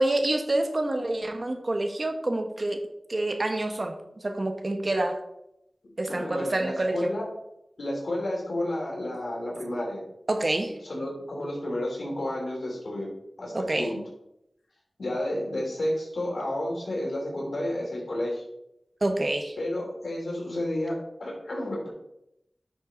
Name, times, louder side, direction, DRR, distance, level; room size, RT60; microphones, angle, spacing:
voice 1, 0.0-2.8 3.1-4.0 4.2-5.2 6.0-7.1 10.3-10.8 13.5-13.9 19.0-19.5, right 2 dB, 50° right, 5 dB, 1.4 m, -27 dB
voice 2, 6.1-7.3 7.8-10.0 10.8-13.1 13.4-14.0 15.0-18.4 19.6-21.9, left 1 dB, 80° left, -2 dB, 3.4 m, -31 dB
9.7 x 6.4 x 3.9 m, 0.81 s
cardioid pair, 45°, 0 cm